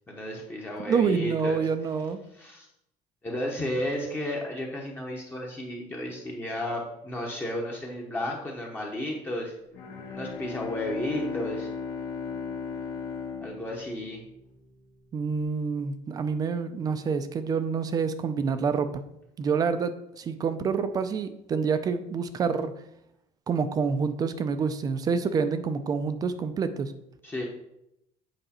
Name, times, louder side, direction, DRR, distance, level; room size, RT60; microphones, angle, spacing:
voice 1, 0.1-1.6 2.3-2.7 3.2-9.5 10.1-11.7 13.4-14.2 27.2-27.4, left 1 dB, 15° left, -2 dB, 0.9 m, -33 dB
voice 2, 0.8-2.2 15.1-19.0 19.4-22.7 23.5-26.9, right 5 dB, 25° right, 11 dB, 0.4 m, -27 dB
Bowed string instrument, 9.7-14.7, left 6 dB, 85° left, 1.9 m, -36 dB
7.9 x 5.0 x 4.3 m, 0.82 s
cardioid pair, 175°, 15 cm